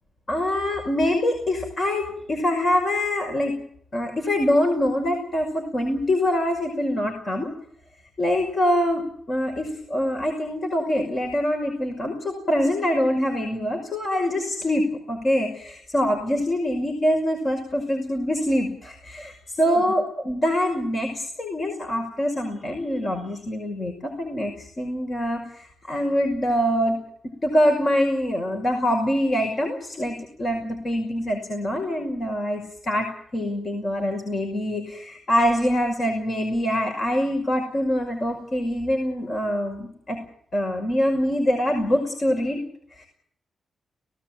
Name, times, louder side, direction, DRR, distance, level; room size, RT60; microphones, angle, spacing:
voice 1, 0.3-3.6 3.9-7.5 8.2-27.0 27.2-40.2 40.5-42.6 42.9-43.1, equal, 45° left, 3 dB, 5.7 m, -24 dB
18.5 x 18.5 x 9.1 m, 0.66 s
cardioid pair, 90°, 0 cm